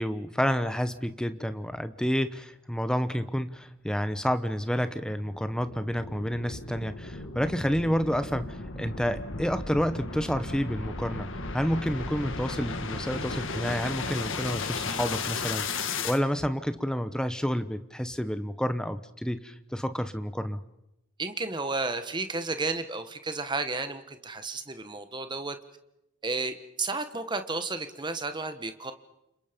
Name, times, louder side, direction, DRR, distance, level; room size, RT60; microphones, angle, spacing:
voice 1, 0.0-20.6, equal, 5° left, 11 dB, 1.0 m, -29 dB
sound 1, 4.8-16.2, left 4 dB, 55° left, 1.7 m, -35 dB
voice 2, 21.2-25.6 26.2-28.9, right 3 dB, 20° right, 9 dB, 1.4 m, -32 dB
30.0 x 27.0 x 5.3 m, 0.87 s
head